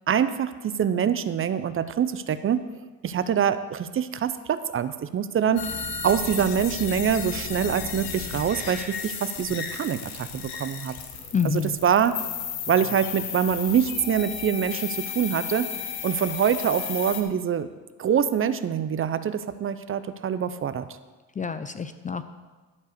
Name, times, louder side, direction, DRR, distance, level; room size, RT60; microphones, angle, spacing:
voice 1, 0.1-2.6 3.0-5.7 6.0-11.0 11.4-12.2 12.7-15.7 16.0-17.7 18.0-20.8, right 8 dB, 35° right, 12 dB, 0.5 m, -25 dB
sound 1, 5.6-17.2, left 7 dB, 90° left, 1.2 m, -34 dB
voice 2, 11.3-11.8 21.4-22.2, left 6 dB, 20° left, 11 dB, 0.5 m, -27 dB
12.0 x 4.7 x 6.6 m, 1.3 s
supercardioid pair, 80°, 37 cm